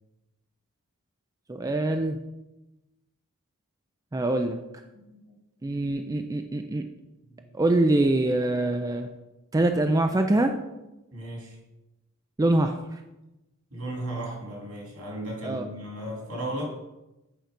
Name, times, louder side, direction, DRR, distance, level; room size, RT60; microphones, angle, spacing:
voice 1, 1.5-2.2 4.1-4.6 5.6-6.8 7.5-9.1 9.5-10.5 12.4-12.7 15.4-15.6, right 2 dB, 15° right, 6 dB, 0.4 m, -24 dB
voice 2, 4.9-5.3 7.2-7.5 11.1-11.6 13.7-16.8, right 1 dB, 70° right, -1 dB, 2.8 m, -35 dB
9.0 x 4.6 x 5.1 m, 0.99 s
head